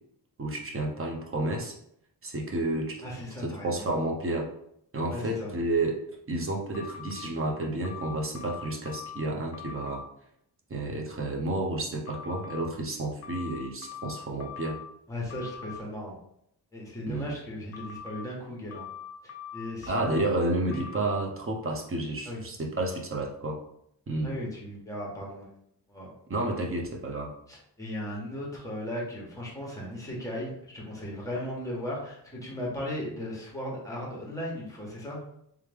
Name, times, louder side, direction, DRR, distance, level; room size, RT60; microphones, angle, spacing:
voice 1, 0.4-1.8 2.2-3.0 3.4-4.5 4.9-6.0 6.3-10.0 10.7-14.8 17.1-17.4 19.9-23.6 24.1-24.3 26.3-27.3, right 2 dB, 30° right, 1 dB, 0.7 m, -31 dB
voice 2, 3.0-3.7 5.1-5.5 15.1-16.2 16.7-18.9 19.5-20.3 20.7-20.9 22.3-22.4 24.2-25.5 25.9-26.1 27.5-35.2, left 1 dB, 10° left, -3 dB, 1.2 m, -36 dB
sound 1, 6.7-7.2 7.8-9.2 9.5-10.0 12.1-12.6 13.2-14.8 15.3-15.7 17.7-18.2 18.7-20.2 20.7-21.2, left 9 dB, 35° left, 0.5 m, -42 dB
3.4 x 3.2 x 3.4 m, 0.72 s
wide cardioid pair, 165°, 41 cm